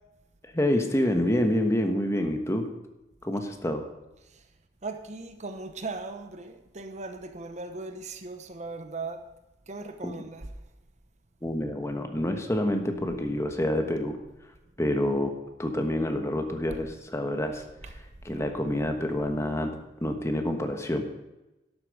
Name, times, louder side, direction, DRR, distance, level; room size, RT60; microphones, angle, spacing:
voice 1, 0.4-2.7 3.2-3.8 10.0-10.1 11.4-14.2 14.8-15.3 15.6-17.6 18.2-19.7 20.0-21.0, left 1 dB, 15° left, 1.3 m, -27 dB
voice 2, 4.2-4.5 4.8-9.3 9.7-10.5 16.7-16.8 17.8-18.0 18.4-18.5, right 3 dB, 40° right, 0.9 m, -38 dB
11.5 x 8.4 x 6.6 m
head